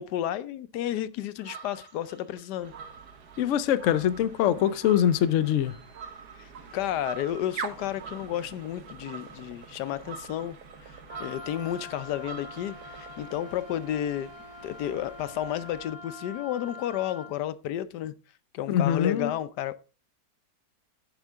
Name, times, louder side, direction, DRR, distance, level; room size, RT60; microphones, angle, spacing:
voice 1, 0.0-2.7 6.4-10.6 10.8-14.3 14.6-18.1 18.5-19.8, left 11 dB, 85° left, 1.2 m, -32 dB
sound 1, 1.4-13.3, right 6 dB, 90° right, 2.0 m, -47 dB
sound 2, 2.6-16.0, right 5 dB, 70° right, 1.8 m, -46 dB
voice 2, 3.4-5.8 18.7-19.3, left 10 dB, 65° left, 0.8 m, -23 dB
Wind instrument woodwind instrument, 11.1-17.4, left 3 dB, 20° right, 1.6 m, -45 dB
10.5 x 7.4 x 3.5 m
omnidirectional pair, 1.7 m